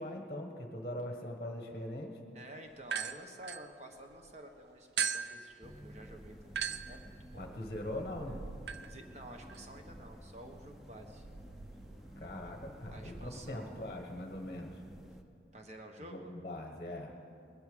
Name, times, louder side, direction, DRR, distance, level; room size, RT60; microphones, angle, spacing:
voice 1, 0.0-2.2 7.4-8.4 12.2-14.8 16.1-17.1, left 1 dB, 30° left, 3 dB, 1.2 m, -41 dB
voice 2, 2.3-7.6 8.9-11.3 12.9-13.8 15.5-16.3, right 1 dB, 40° right, 4 dB, 1.3 m, -51 dB
sound 1, 2.8-4.3 5.0-13.3, right 7 dB, 70° right, 0.5 m, -42 dB
sound 2, 5.6-15.2, equal, ahead, 0.6 m, -53 dB
19.5 x 12.0 x 5.2 m, 2.8 s
head